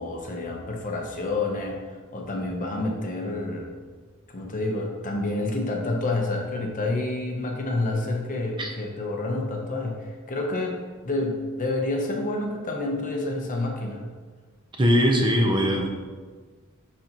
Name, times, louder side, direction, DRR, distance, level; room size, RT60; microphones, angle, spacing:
voice 1, 0.0-3.7 4.3-14.0, left 2 dB, 40° left, 1 dB, 0.9 m, -29 dB
voice 2, 14.8-15.9, equal, 20° right, 1 dB, 0.7 m, -20 dB
10.0 x 4.0 x 3.0 m, 1.5 s
head